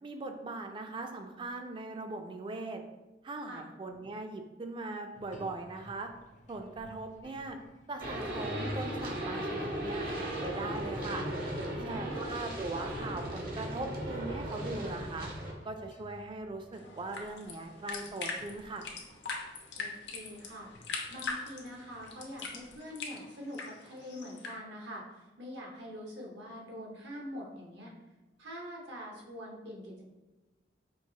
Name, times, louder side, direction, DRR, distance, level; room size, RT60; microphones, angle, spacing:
voice 1, 0.0-2.8 3.2-6.1 6.5-7.6 7.9-11.3 11.8-15.3 15.6-18.9, right 2 dB, 30° right, 5 dB, 0.3 m, -40 dB
sound 1, 5.1-23.0, equal, 45° left, 0.4 m, -53 dB
sound 2, 8.0-15.5, right 1 dB, 55° right, 0.7 m, -37 dB
voice 2, 11.7-12.2 19.8-20.7 21.1-27.9 28.4-30.0, equal, 85° right, -2 dB, 1.0 m, -44 dB
sound 3, 16.7-24.5, left 4 dB, 80° left, 0.7 m, -42 dB
4.5 x 2.7 x 2.8 m, 1.1 s
head